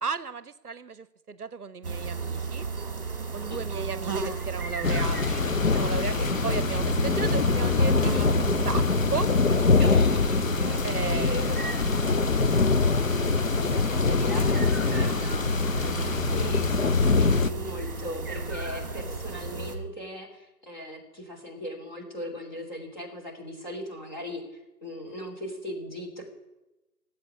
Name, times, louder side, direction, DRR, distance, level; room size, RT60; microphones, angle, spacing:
voice 1, 0.0-2.7 3.3-6.2 6.4-8.9 9.1-9.3 10.8-11.4 11.9-12.4, right 5 dB, 65° right, 16 dB, 0.7 m, -35 dB
sound 1, 1.8-19.8, right 4 dB, 35° right, 1.7 m, -34 dB
sound 2, 4.8-17.5, left 4 dB, 55° left, 0.5 m, -24 dB
voice 2, 9.6-11.8 13.2-26.2, equal, 25° left, -1 dB, 3.1 m, -39 dB
15.0 x 8.0 x 9.5 m, 1.0 s
figure-of-eight pair, 170°, 50 cm